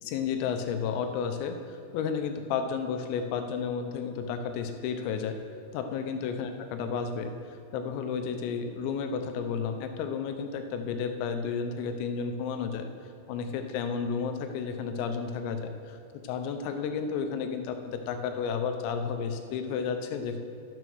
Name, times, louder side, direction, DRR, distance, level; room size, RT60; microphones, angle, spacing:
voice 1, 0.0-5.4 5.7-7.3 7.7-12.9 13.3-16.0 16.2-20.4, left 6 dB, 90° left, 6 dB, 3.5 m, -32 dB
11.0 x 8.1 x 6.1 m, 2.6 s
omnidirectional pair, 5.8 m